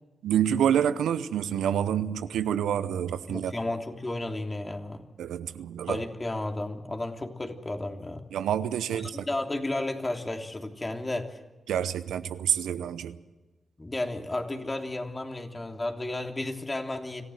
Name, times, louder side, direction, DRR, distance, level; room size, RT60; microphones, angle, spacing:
voice 1, 0.2-3.5 5.2-6.0 8.3-9.2 11.7-13.2, right 9 dB, 85° right, 13 dB, 0.8 m, -27 dB
voice 2, 3.3-5.0 5.9-8.3 8.9-11.4 13.8-17.2, left 2 dB, 30° left, 3 dB, 3.1 m, -33 dB
26.0 x 15.5 x 8.0 m, 1.2 s
supercardioid pair, 40°, 0 cm